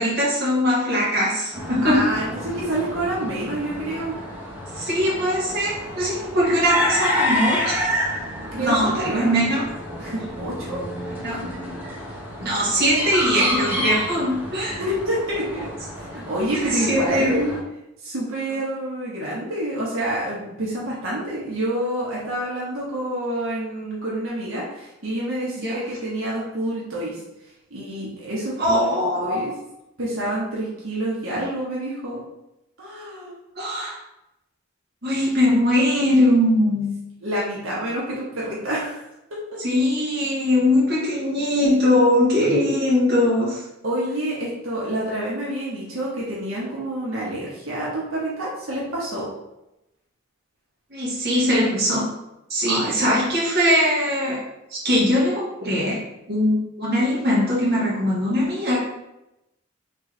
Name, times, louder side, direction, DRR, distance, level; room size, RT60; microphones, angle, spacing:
voice 1, 0.0-2.0 4.7-7.8 8.6-9.7 11.2-11.4 12.4-14.8 16.6-17.4 25.5-25.8 28.6-29.5 33.6-33.9 35.0-37.0 39.6-43.6 50.9-52.1 52.5-54.4 54.7-56.0 56.3-58.8, left 1 dB, 55° right, -6 dB, 1.4 m, -21 dB
sound 1, 1.5-17.6, left 1 dB, 10° right, 0.8 m, -29 dB
voice 2, 1.8-4.2 8.5-9.5 10.0-10.8 11.3-11.4 14.8-15.7 16.1-17.5 18.0-27.2 27.7-29.5 30.0-32.2 32.8-33.3 37.2-39.0 39.3-39.4 43.8-49.3 52.7-53.1, right 1 dB, 90° right, -6 dB, 1.1 m, -28 dB
3.7 x 3.3 x 3.2 m, 0.90 s
head